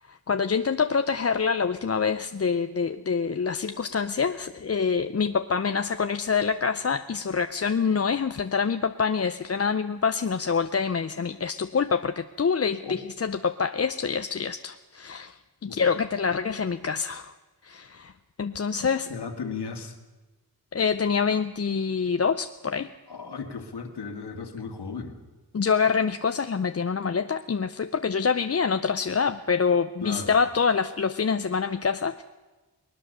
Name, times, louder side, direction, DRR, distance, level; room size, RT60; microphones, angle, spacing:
voice 1, 0.1-15.3 15.6-17.3 17.6-18.1 18.4-19.1 20.7-22.9 25.5-32.2, left 5 dB, 40° left, 9 dB, 0.6 m, -26 dB
voice 2, 19.1-20.0 23.1-25.2 30.0-30.3, left 5 dB, 80° left, 5 dB, 2.2 m, -35 dB
20.0 x 19.5 x 6.7 m, 1.2 s
cardioid pair, 60°, 40 cm